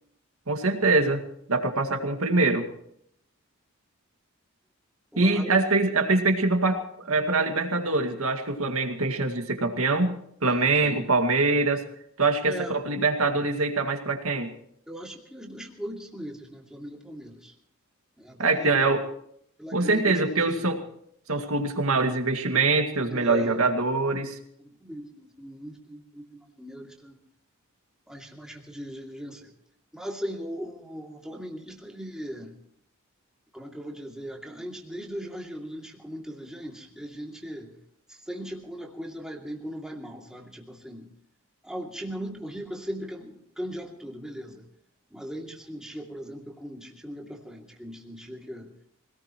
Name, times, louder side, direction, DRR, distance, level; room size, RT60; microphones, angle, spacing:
voice 1, 0.5-2.7 5.2-10.2 10.4-11.8 12.2-12.5 12.9-14.5 18.4-19.0 19.7-20.8 21.3-24.4, right 3 dB, 90° right, 5 dB, 2.1 m, -24 dB
voice 2, 5.1-5.6 10.5-11.0 12.4-12.7 14.9-17.6 18.2-18.9 19.6-20.7 23.1-23.7 24.6-27.2 28.1-29.5 29.9-32.5 33.5-37.7 38.1-41.1 41.6-44.7 45.1-48.7, equal, 5° right, 0 dB, 2.6 m, -39 dB
25.0 x 18.0 x 3.0 m, 0.68 s
head